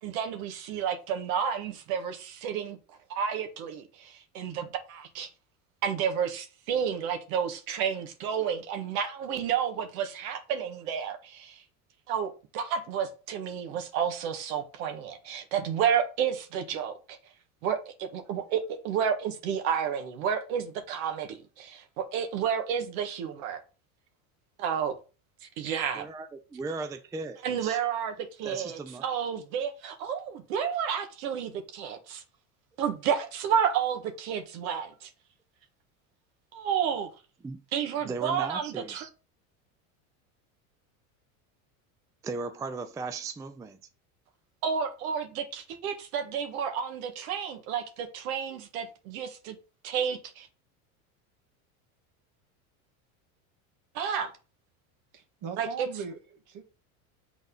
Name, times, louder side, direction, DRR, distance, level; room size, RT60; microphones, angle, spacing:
voice 1, 0.0-2.8 3.1-5.3 5.8-11.6 12.1-16.9 17.6-23.6 24.6-24.9 25.4-26.1 27.4-32.2 32.8-35.1 36.5-37.1 37.7-39.1 44.6-49.6 49.8-50.5 53.9-54.3 55.6-55.9, right 8 dB, 75° right, 1.6 m, -31 dB
voice 2, 25.9-27.8 28.4-29.1 37.4-39.1 42.2-43.8, right 4 dB, 10° right, 0.4 m, -37 dB
voice 3, 55.1-56.9, right 6 dB, 45° right, 1.9 m, -40 dB
6.3 x 4.0 x 5.3 m
supercardioid pair, 115°, 42 cm